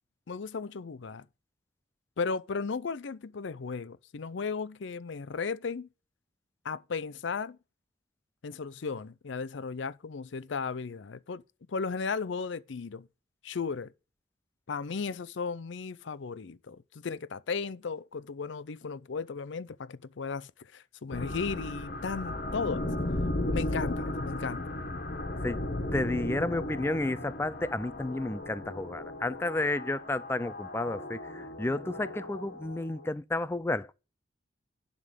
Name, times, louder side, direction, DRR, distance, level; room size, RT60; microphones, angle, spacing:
voice 1, 0.3-1.3 2.2-5.9 6.6-7.6 8.4-11.4 11.7-13.1 13.4-13.9 14.7-22.9 23.5-24.7, left 5 dB, 70° left, 0.5 m, -35 dB
sound 1, 21.1-33.1, left 1 dB, 50° left, 1.4 m, -35 dB
voice 2, 25.9-33.9, left 2 dB, 10° left, 0.3 m, -31 dB
11.0 x 3.7 x 6.5 m
head